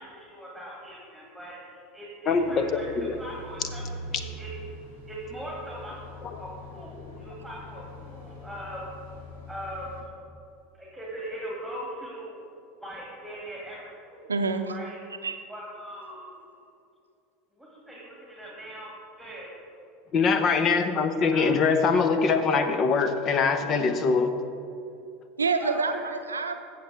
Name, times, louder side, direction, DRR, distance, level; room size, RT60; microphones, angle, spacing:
voice 1, 0.0-2.9 3.2-3.8 4.1-4.5 4.9-6.1 6.4-8.8 9.5-10.1 10.7-12.4 12.8-14.3 14.7-15.0 15.5-16.3 17.5-19.5 21.3-21.5 25.6-26.1, equal, ahead, -5 dB, 2.4 m, -40 dB
sound 1, 2.3-10.0, equal, 70° left, 1.9 m, -43 dB
voice 2, 2.3-2.7 3.0-3.2 20.1-24.4, left 5 dB, 35° left, 9 dB, 0.8 m, -23 dB
voice 3, 14.3-14.8 15.2-15.4 25.4-26.6, right 4 dB, 80° right, 7 dB, 0.6 m, -27 dB
15.0 x 6.8 x 3.5 m, 2.6 s
figure-of-eight pair, 80°, 0 cm